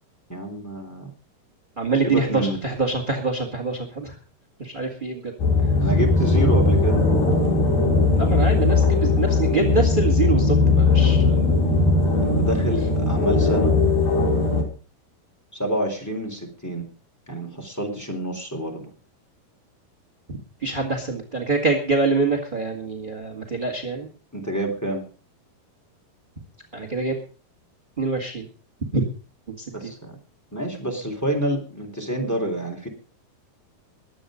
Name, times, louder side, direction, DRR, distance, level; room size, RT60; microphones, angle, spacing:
voice 1, 0.3-1.1 2.0-2.6 5.5-7.1 11.0-11.3 12.1-13.8 15.5-16.9 17.3-18.9 24.3-25.0 29.7-30.2 30.5-32.9, right 1 dB, 5° left, 1 dB, 3.0 m, -28 dB
voice 2, 1.8-4.2 4.6-5.3 8.2-11.6 20.3-24.1 26.7-27.1 28.0-28.5 28.9-29.0 29.5-29.9, right 3 dB, 30° right, 4 dB, 0.9 m, -25 dB
sound 1, 5.4-14.6, left 3 dB, 65° left, 4.8 m, -19 dB
22.0 x 8.2 x 5.1 m, 0.39 s
omnidirectional pair, 4.6 m